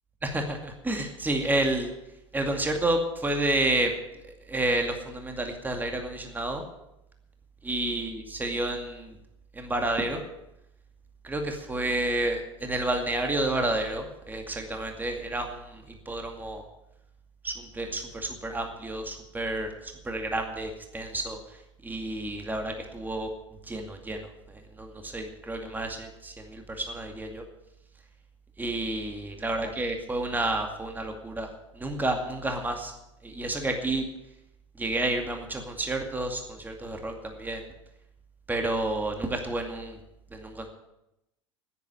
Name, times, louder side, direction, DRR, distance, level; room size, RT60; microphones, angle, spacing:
voice 1, 0.2-1.9 2.3-3.9 4.5-6.6 7.6-9.1 9.6-10.2 11.2-16.6 17.4-21.4 21.8-23.3 23.7-27.4 28.6-31.5 31.8-32.9 33.2-34.0 34.8-37.6 38.5-40.0 40.3-40.7, right 2 dB, 10° right, 4 dB, 2.2 m, -30 dB
10.0 x 10.0 x 9.5 m, 0.88 s
figure-of-eight pair, 80°, 15 cm